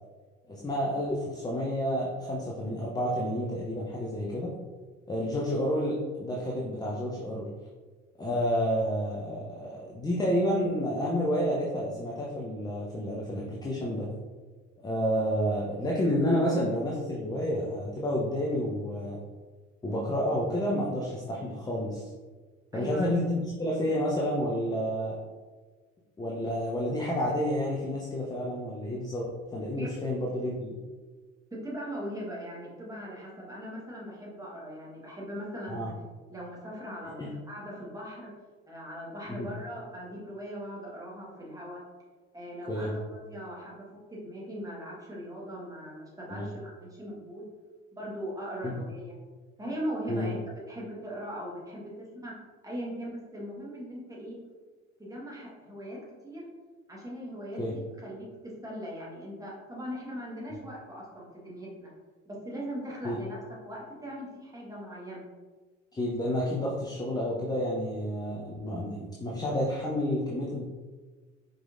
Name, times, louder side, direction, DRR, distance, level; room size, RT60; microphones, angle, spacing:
voice 1, 0.5-4.5 5.1-7.5 8.2-14.1 14.8-19.2 19.8-22.1 22.7-25.1 26.2-30.7 35.7-35.9 37.2-37.3 39.3-39.5 42.7-42.9 46.3-46.5 48.6-48.8 50.1-50.3 57.6-57.8 63.0-63.2 65.9-70.6, equal, 10° left, -3 dB, 0.6 m, -30 dB
voice 2, 22.7-23.1 29.8-30.1 31.5-35.9 36.3-38.3 38.7-41.8 42.3-47.5 48.0-49.1 49.6-50.4 50.7-52.4 52.6-54.4 55.0-56.5 56.9-61.9 62.2-65.2, equal, 10° right, -4 dB, 1.4 m, -40 dB
4.6 x 3.8 x 2.5 m, 1.4 s
figure-of-eight pair, 60°, 39 cm